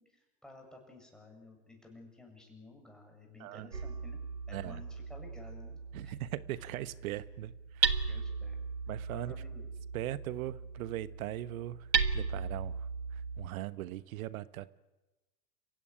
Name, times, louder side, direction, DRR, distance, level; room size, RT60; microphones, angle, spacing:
voice 1, 0.0-4.2 4.5-5.8 6.0-6.2 6.6-6.7 7.1-7.2 8.1-8.6 9.1-9.7, left 2 dB, ahead, 7.6 m, -54 dB
Hammer, 3.7-13.5, right 5 dB, 90° right, 1.5 m, -36 dB
voice 2, 5.9-7.9 8.9-9.4 9.9-11.8 12.1-12.8 13.4-14.7, right 14 dB, 55° right, 1.2 m, -39 dB
29.5 x 16.0 x 9.8 m
figure-of-eight pair, 95°, 49 cm